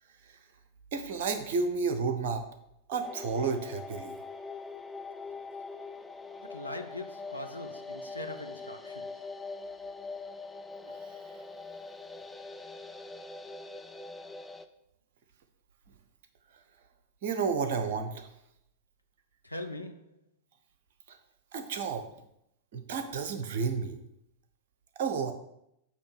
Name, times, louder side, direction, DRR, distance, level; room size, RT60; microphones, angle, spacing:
voice 1, 0.9-2.5 2.9-4.1 11.0-11.2 17.2-18.3 21.1-21.2 21.5-22.1 22.7-24.0 25.0-25.3, right 5 dB, 55° right, 0.9 m, -31 dB
sound 1, 3.0-14.7, left 3 dB, 5° left, 0.5 m, -43 dB
voice 2, 6.4-9.2 19.4-20.2, left 1 dB, 90° left, 0.7 m, -41 dB
8.2 x 3.1 x 6.2 m
figure-of-eight pair, 90°, 0 cm